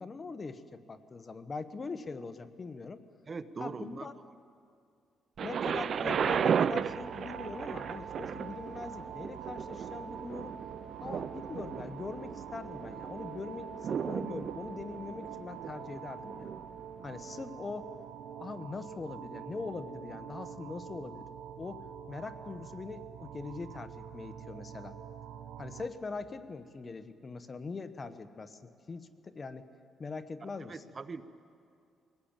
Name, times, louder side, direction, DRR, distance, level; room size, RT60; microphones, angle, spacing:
voice 1, 0.0-3.0 3.6-4.1 5.4-10.6 11.0-16.5 17.0-17.9 18.4-21.3 21.6-24.9 25.6-29.6 30.0-30.8, left 4 dB, 35° left, 11 dB, 1.2 m, -42 dB
voice 2, 3.3-4.1 30.4-31.2, right 4 dB, 40° right, 12 dB, 0.9 m, -41 dB
Thunder, 5.4-17.2 18.0-18.1, right 7 dB, 55° right, 0.5 m, -35 dB
sound 1, 6.3-25.9, right 8 dB, 90° right, 1.1 m, -45 dB
22.5 x 19.0 x 8.9 m, 2.4 s
cardioid pair, 90°, 0 cm